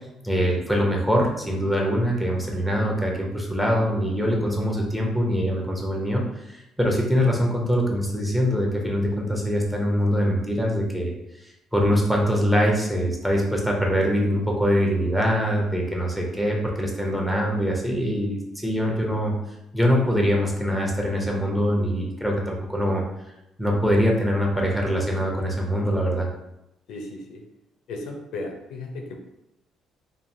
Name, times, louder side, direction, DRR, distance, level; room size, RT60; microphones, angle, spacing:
voice 1, 0.2-6.2 6.5-11.1 11.7-19.3 19.7-23.0 23.6-26.3, equal, 5° right, -1 dB, 0.6 m, -23 dB
voice 2, 26.9-27.5 27.9-29.2, left 2 dB, 80° left, 3 dB, 0.5 m, -35 dB
3.1 x 2.3 x 2.6 m, 0.89 s
cardioid pair, 110°, 0 cm